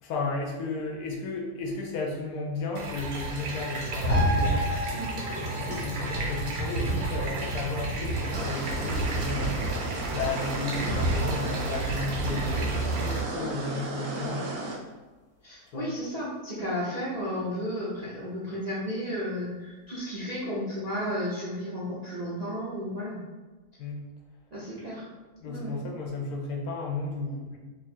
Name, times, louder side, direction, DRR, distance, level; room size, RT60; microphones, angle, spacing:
voice 1, 0.0-4.7 5.4-14.4 15.7-15.9 23.8-24.0 25.4-27.6, left 3 dB, 75° left, 1 dB, 1.2 m, -34 dB
sound 1, 2.8-13.2, right 1 dB, 85° right, 1.3 m, -30 dB
sound 2, 4.1-11.0 11.4-11.5, right 1 dB, 15° left, 0.3 m, -37 dB
sound 3, 8.3-14.8, right 2 dB, 70° right, 1.0 m, -35 dB
voice 2, 15.4-23.2 24.5-25.0 25.4-25.7, equal, 45° right, -9 dB, 0.5 m, -33 dB
3.1 x 2.4 x 4.2 m, 1.2 s
omnidirectional pair, 1.6 m